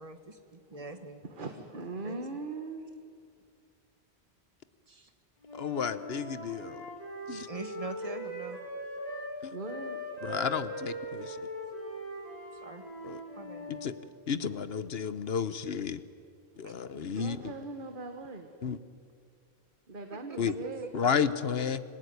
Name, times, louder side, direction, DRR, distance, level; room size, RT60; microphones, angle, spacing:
voice 1, 0.0-1.2 2.0-2.2 4.9-5.1 7.5-8.6 12.6-12.8 13.4-13.7 16.6-16.7 17.2-17.3 20.1-20.5 20.8-20.9, right 3 dB, 35° right, 8 dB, 1.7 m, -43 dB
voice 2, 1.2-2.9 9.5-10.0 17.2-18.5 19.9-21.1, right 3 dB, 50° right, 5 dB, 1.6 m, -40 dB
Wind instrument woodwind instrument, 5.4-9.4 9.6-13.9, equal, 35° left, 6.0 m, -40 dB
voice 3, 5.5-6.9 7.3-7.5 9.4-9.6 10.2-11.4 13.0-13.2 13.7-13.9 14.3-16.0 16.6-17.5 18.6-18.8 20.4-20.6 20.9-21.8, left 6 dB, 65° left, 13 dB, 1.1 m, -32 dB
26.5 x 17.5 x 9.6 m, 2.3 s
omnidirectional pair, 1.1 m